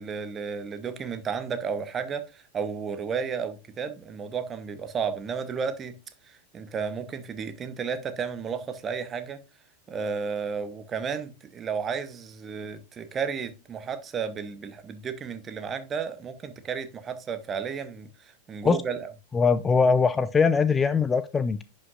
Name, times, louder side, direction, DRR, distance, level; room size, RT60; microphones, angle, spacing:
voice 1, 0.0-5.9 6.3-9.4 9.9-19.1, right 6 dB, 25° right, 0.9 m, -33 dB
voice 2, 19.3-21.6, left 5 dB, 15° left, 0.4 m, -21 dB
11.0 x 5.3 x 2.4 m
figure-of-eight pair, 90°, 0 cm